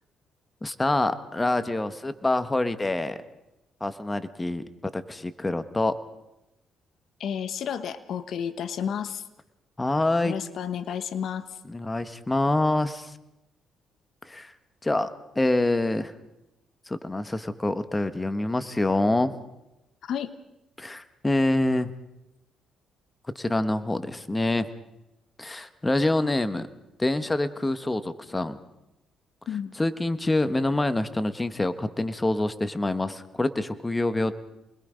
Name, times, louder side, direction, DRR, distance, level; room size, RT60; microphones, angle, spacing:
voice 1, 0.6-3.2 3.8-4.6 4.9-5.9 9.8-10.3 11.7-13.1 14.2-14.5 14.8-15.1 15.3-16.1 16.9-19.4 20.8-21.9 23.3-24.6 25.4-26.7 27.0-28.6 29.8-34.3, left 2 dB, 15° left, 11 dB, 1.3 m, -26 dB
voice 2, 7.2-9.2 10.2-11.6 20.0-20.3 29.5-29.7, left 8 dB, 65° left, 12 dB, 1.1 m, -31 dB
28.5 x 21.0 x 5.2 m, 0.91 s
cardioid pair, 90°, 0 cm